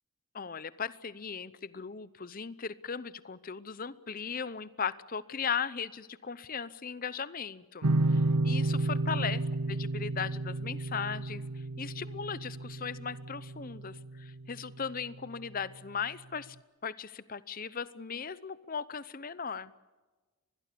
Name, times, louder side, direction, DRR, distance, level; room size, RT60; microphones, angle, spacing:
voice 1, 0.3-9.4 9.7-16.6 16.8-19.7, left 6 dB, 40° left, 16 dB, 0.7 m, -38 dB
sound 1, 7.8-15.0, right 2 dB, 90° right, 1.0 m, -32 dB
24.0 x 21.0 x 6.9 m, 1.3 s
head